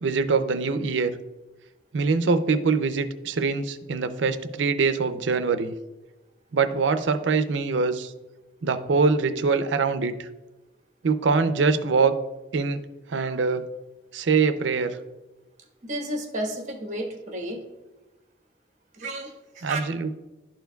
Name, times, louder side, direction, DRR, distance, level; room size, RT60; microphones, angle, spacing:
voice 1, 0.0-1.1 1.9-5.7 6.5-8.1 8.6-10.1 11.0-12.2 12.5-12.8 13.1-13.6 14.1-15.0 19.6-20.1, right 4 dB, 85° right, 10 dB, 0.5 m, -23 dB
voice 2, 15.8-17.6 19.0-19.9, right 1 dB, 40° right, 1 dB, 1.2 m, -32 dB
11.5 x 4.5 x 2.3 m, 1.1 s
head